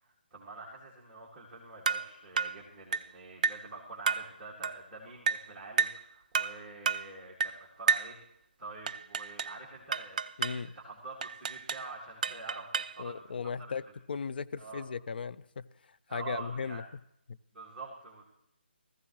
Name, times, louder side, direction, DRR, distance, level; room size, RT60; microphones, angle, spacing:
voice 1, 0.0-8.2 8.6-10.2 10.6-13.2 13.6-13.7 14.6-14.8 16.1-16.8 17.5-18.3, right 3 dB, 10° right, 2.1 m, -46 dB
sound 1, 1.9-2.1 2.4-2.6 2.9-3.1 3.4-3.7 4.1-4.3 4.6-4.8 5.3-5.5 5.8-6.0 6.3-6.6 6.9-7.1 7.4-7.6 7.9-8.1 8.9-9.6 9.9-10.6 11.2-11.9 12.2-13.0, right 5 dB, 40° right, 0.4 m, -31 dB
voice 2, 10.4-10.7 13.0-13.8 14.1-15.7 16.1-16.8 17.3-17.4, left 5 dB, 55° left, 0.4 m, -36 dB
17.5 x 15.0 x 3.1 m
figure-of-eight pair, 155°, 6 cm